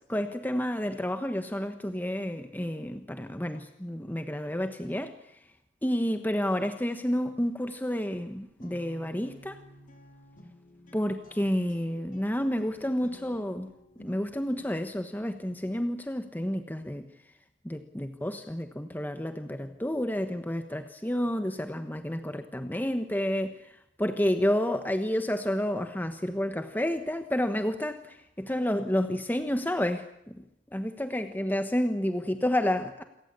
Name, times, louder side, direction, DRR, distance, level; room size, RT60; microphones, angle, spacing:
voice 1, 0.1-5.4 5.8-9.6 10.9-13.7 14.0-17.1 17.6-30.4 30.7-33.0, equal, 10° left, 8 dB, 1.2 m, -30 dB
sound 1, 8.1-15.0, equal, 45° left, 4.1 m, -53 dB
27.5 x 15.5 x 9.7 m, 0.80 s
head